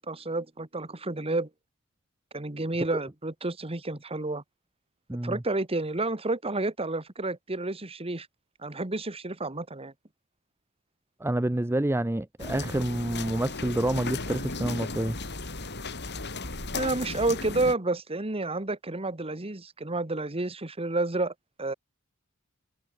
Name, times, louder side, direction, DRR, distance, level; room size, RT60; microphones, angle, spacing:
voice 1, 0.0-1.5 2.3-4.4 5.2-8.3 8.6-9.9 16.7-21.3 21.6-21.7, right 2 dB, 25° right, 1.7 m, -30 dB
voice 2, 5.1-5.4 11.2-15.2, right 1 dB, 10° right, 0.6 m, -28 dB
sound 1, 12.4-17.8, left 3 dB, 50° left, 6.9 m, -35 dB
head